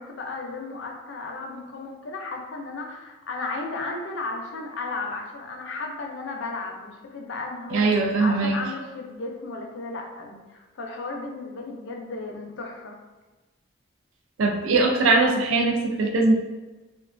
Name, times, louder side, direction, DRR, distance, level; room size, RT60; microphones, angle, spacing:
voice 1, 0.0-13.0, left 3 dB, 70° left, 1 dB, 0.4 m, -34 dB
voice 2, 7.7-8.6 14.4-16.3, right 3 dB, 85° right, 2 dB, 0.4 m, -21 dB
2.4 x 2.2 x 2.4 m, 1.2 s
head